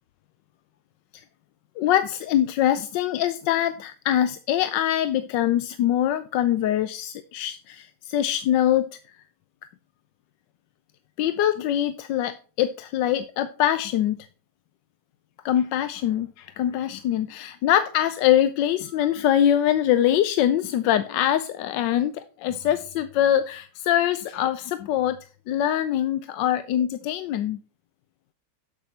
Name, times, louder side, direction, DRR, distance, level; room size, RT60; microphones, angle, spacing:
voice 1, 1.8-8.9 11.2-14.3 15.4-25.2 25.5-27.6, left 11 dB, 85° left, 12 dB, 1.3 m, -23 dB
13.0 x 5.9 x 4.2 m, 0.37 s
omnidirectional pair, 1.9 m